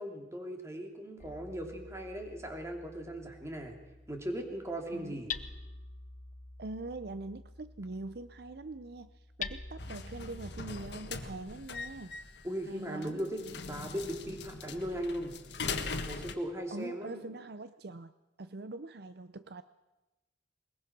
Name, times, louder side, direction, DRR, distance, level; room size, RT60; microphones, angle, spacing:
voice 1, 0.0-3.8 4.1-5.3 12.4-15.4 16.1-17.2, equal, 15° right, 3 dB, 2.9 m, -38 dB
Hammer, 1.2-11.0, left 5 dB, 45° left, 0.9 m, -47 dB
voice 2, 6.6-9.1 9.4-12.1 12.7-13.3 16.7-18.1 18.4-19.6, right 2 dB, 60° right, 12 dB, 0.7 m, -43 dB
sound 1, 9.8-16.3, left 4 dB, 70° left, 1.7 m, -41 dB
21.5 x 21.5 x 6.1 m, 1.0 s
head